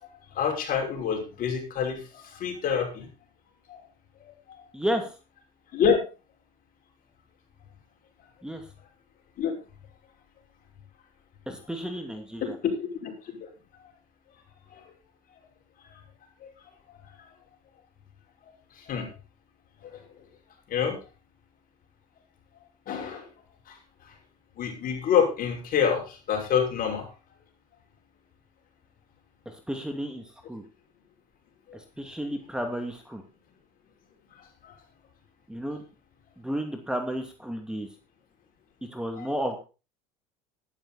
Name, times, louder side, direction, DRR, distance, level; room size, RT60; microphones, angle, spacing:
voice 1, 0.0-3.1 3.7-3.8 4.2-4.6 5.7-6.0 9.4-9.5 12.6-13.1 13.4-13.5 16.4-16.5 18.8-19.1 19.8-20.0 20.7-21.0 22.9-23.3 23.7-23.8 24.6-27.1 34.6-34.7 39.2-39.3, left 7 dB, 50° left, 3 dB, 5.9 m, -27 dB
voice 2, 4.7-5.1 8.4-8.6 11.5-12.6 29.5-30.6 31.7-33.2 35.5-35.8 36.4-37.9 38.9-39.6, equal, 5° right, 5 dB, 2.5 m, -32 dB
12.5 x 12.0 x 4.2 m, 0.32 s
supercardioid pair, 95°, 19 cm